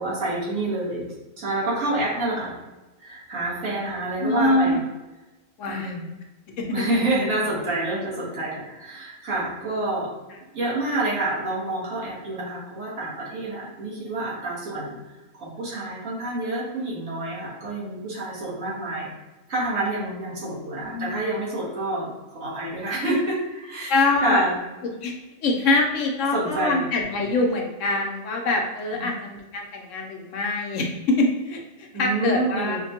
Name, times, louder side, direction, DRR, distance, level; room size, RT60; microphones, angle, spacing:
voice 1, 0.0-2.5 3.0-4.8 5.7-6.1 6.7-10.1 10.5-15.0 15.4-19.1 19.5-24.6 26.3-26.8 28.9-29.1 31.9-32.8, right 2 dB, 75° right, -7 dB, 1.6 m, -28 dB
voice 2, 4.2-4.8 5.6-5.9 6.6-6.7 20.3-20.4 20.8-21.2 23.9-24.4 25.0-25.1 25.4-32.8, left 2 dB, 70° left, 1 dB, 0.9 m, -24 dB
4.9 x 2.2 x 2.8 m, 1.1 s
omnidirectional pair, 1.4 m